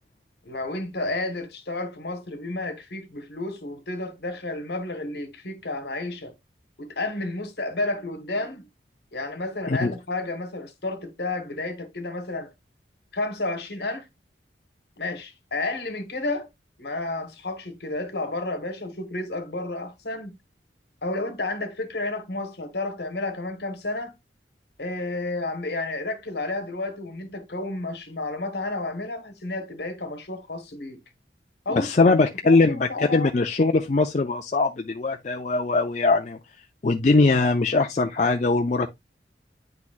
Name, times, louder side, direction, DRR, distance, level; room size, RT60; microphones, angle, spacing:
voice 1, 0.4-6.3 6.8-8.7 9.1-12.5 13.1-14.1 15.0-16.5 16.8-20.3 21.0-24.1 24.8-31.0 31.6-32.1 32.4-33.3, left 2 dB, 70° left, 1.4 m, -31 dB
voice 2, 31.8-36.4 36.8-38.9, left 3 dB, 40° left, 0.4 m, -21 dB
9.6 x 4.0 x 2.4 m
head